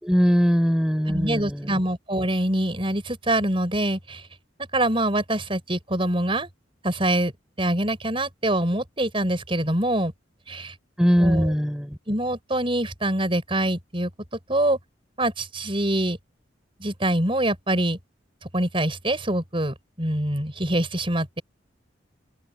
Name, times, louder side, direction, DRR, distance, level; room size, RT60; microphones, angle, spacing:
voice 1, 0.0-1.8 11.0-12.0, equal, 5° right, 5.0 m, -21 dB
voice 2, 1.1-4.2 4.7-6.5 6.8-7.3 7.6-10.1 10.5-10.7 11.2-11.5 12.1-14.1 14.5-14.8 15.2-16.2 16.8-18.0 18.5-21.4, right 1 dB, 30° right, 5.7 m, -24 dB
open air
head